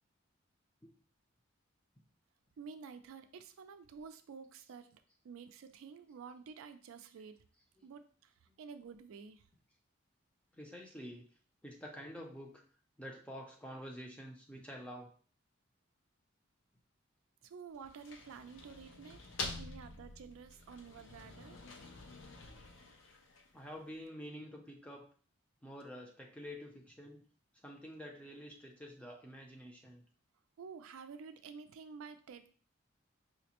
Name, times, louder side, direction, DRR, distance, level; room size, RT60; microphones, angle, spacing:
voice 1, 2.6-7.4 7.8-9.5 17.4-19.2 19.6-21.6 30.6-32.5, right 5 dB, 85° right, 9 dB, 0.3 m, -51 dB
voice 2, 10.5-11.3 11.6-12.6 13.0-15.1 23.5-25.1 25.6-27.2 27.6-30.0, equal, 5° left, 0 dB, 0.5 m, -48 dB
sound 1, 17.7-23.7, left 3 dB, 70° left, 0.5 m, -47 dB
4.9 x 2.0 x 2.9 m, 0.42 s
head